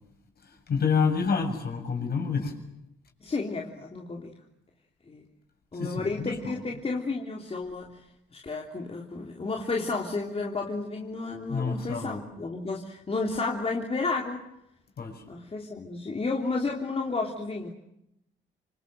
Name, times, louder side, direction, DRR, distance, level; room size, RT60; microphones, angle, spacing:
voice 1, 0.4-2.5 5.7-6.6 11.5-12.2 15.0-15.2, left 5 dB, 50° left, 4 dB, 7.4 m, -28 dB
voice 2, 3.2-4.4 5.1-5.2 5.7-8.1 8.3-14.5 15.3-17.7, left 3 dB, 30° left, 0 dB, 3.3 m, -32 dB
27.5 x 25.5 x 7.8 m, 0.82 s
cardioid pair, 90°, 20 cm